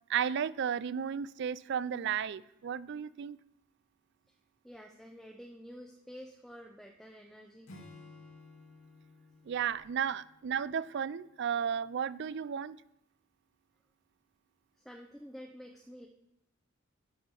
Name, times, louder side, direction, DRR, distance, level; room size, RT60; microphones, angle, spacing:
voice 1, 0.1-3.4 9.5-12.8, right 8 dB, 60° right, 19 dB, 0.4 m, -33 dB
voice 2, 4.6-7.7 14.8-16.1, equal, ahead, 1 dB, 0.6 m, -49 dB
Acoustic guitar / Strum, 7.7-11.1, left 3 dB, 85° left, 1.9 m, -55 dB
11.5 x 6.3 x 5.4 m, 0.82 s
head